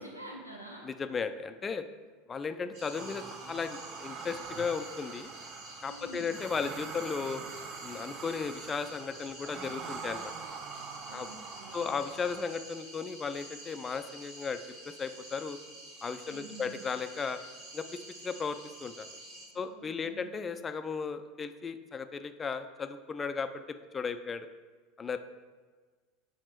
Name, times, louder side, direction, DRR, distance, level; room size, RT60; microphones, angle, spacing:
voice 1, 0.0-0.9 5.9-6.3 11.1-12.0 16.3-16.8 19.5-20.3, right 1 dB, 85° right, 0 dB, 0.8 m, -48 dB
voice 2, 0.8-1.8 2.3-5.3 5.8-7.4 7.8-10.3 11.1-11.3 11.7-14.6 14.9-15.6 16.0-17.4 17.7-19.1 19.5-23.5 23.9-24.5 25.0-25.2, left 5 dB, 20° left, 10 dB, 0.4 m, -35 dB
sound 1, 2.7-19.5, right 1 dB, 60° right, 1.8 m, -49 dB
sound 2, 2.9-12.4, right 5 dB, 35° right, 0.5 m, -44 dB
5.8 x 4.3 x 4.5 m, 1.4 s
figure-of-eight pair, 80°, 0 cm